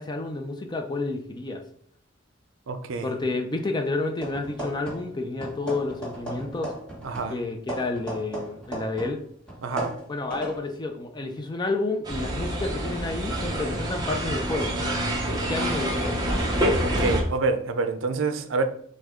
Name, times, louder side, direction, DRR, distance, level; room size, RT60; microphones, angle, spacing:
voice 1, 0.0-1.6 3.0-6.7 7.3-9.2 10.1-14.7 15.5-16.2, left 2 dB, 20° left, 5 dB, 0.5 m, -30 dB
voice 2, 2.7-3.1 7.0-7.4 9.6-9.9 16.8-18.6, right 3 dB, 75° right, 9 dB, 0.5 m, -27 dB
sound 1, 4.2-5.2 5.4-9.2 9.5-10.6, right 1 dB, 5° left, 1.3 m, -36 dB
sound 2, 12.0-17.2, equal, 20° right, 0.8 m, -27 dB
6.1 x 2.2 x 3.6 m, 0.63 s
head